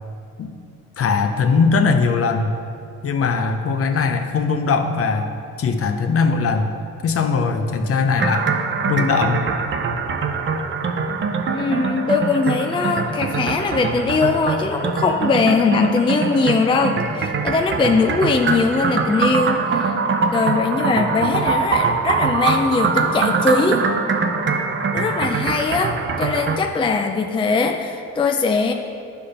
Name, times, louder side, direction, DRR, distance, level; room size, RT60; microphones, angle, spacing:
voice 1, 1.0-2.5 3.0-5.3 5.6-6.7 7.0-8.5 8.9-9.4, left 4 dB, 50° left, 6 dB, 0.7 m, -20 dB
sound 1, 8.2-26.6, right 4 dB, 40° right, 0.6 m, -23 dB
voice 2, 11.5-20.0 20.3-23.9 24.9-28.7, left 4 dB, 15° left, 4 dB, 0.4 m, -20 dB
9.8 x 3.4 x 5.6 m, 2.4 s
cardioid pair, 90°, 30 cm